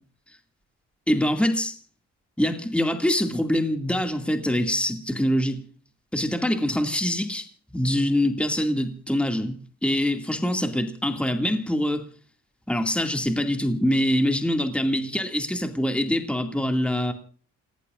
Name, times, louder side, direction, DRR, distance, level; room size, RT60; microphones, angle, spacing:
voice 1, 1.1-1.7 2.4-5.6 6.1-7.5 7.7-12.1 12.7-17.1, left 1 dB, 5° left, 2.2 m, -24 dB
29.5 x 18.0 x 2.5 m
cardioid pair, 90°, 30 cm